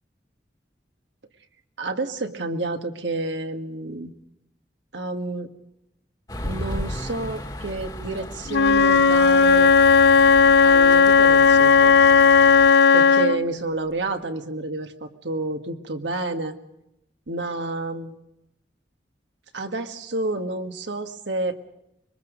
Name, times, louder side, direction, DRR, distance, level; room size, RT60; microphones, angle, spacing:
voice 1, 1.8-4.1 4.9-5.5 6.4-9.7 10.6-12.0 12.9-16.5 17.3-18.2 19.5-21.7, right 2 dB, 85° right, 6 dB, 1.8 m, -29 dB
sound 1, 6.3-12.7, equal, 20° left, 1.7 m, -35 dB
Wind instrument woodwind instrument, 8.5-13.5, left 5 dB, 70° left, 0.7 m, -15 dB
25.0 x 23.0 x 5.2 m, 0.86 s
head